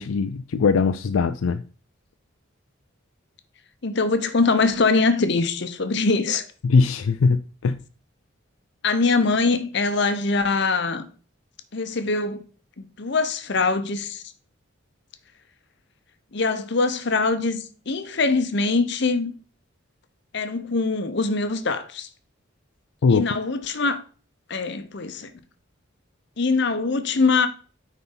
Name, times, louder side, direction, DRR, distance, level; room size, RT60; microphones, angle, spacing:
voice 1, 0.0-1.6 6.6-7.8 23.0-23.2, left 4 dB, 80° left, 0.4 m, -21 dB
voice 2, 3.8-6.4 8.8-11.1 11.7-12.4 12.8-14.2 16.3-19.3 20.3-22.1 23.1-24.0 24.5-25.3 26.4-27.5, left 3 dB, 55° left, 0.8 m, -23 dB
9.4 x 4.2 x 3.9 m
head